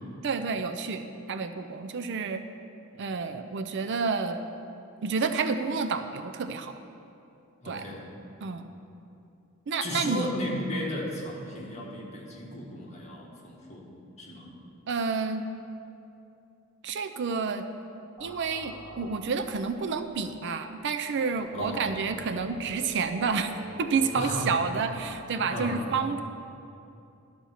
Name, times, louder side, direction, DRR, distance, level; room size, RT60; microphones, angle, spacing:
voice 1, 0.2-2.4 3.0-4.4 5.0-6.7 7.7-7.8 8.4-8.7 9.7-10.3 14.9-15.5 16.8-17.7 18.2-23.5 23.8-26.2, right 5 dB, 55° right, 8 dB, 0.4 m, -29 dB
voice 2, 2.9-3.2 7.6-8.0 9.8-13.9 14.2-14.5 21.5-21.9 24.1-24.5 24.9-25.1 25.5-26.0, left 1 dB, 30° left, -4 dB, 1.6 m, -35 dB
sound 1, 18.2-25.1, right 1 dB, 10° right, 2.4 m, -46 dB
11.5 x 4.3 x 7.1 m, 2.7 s
head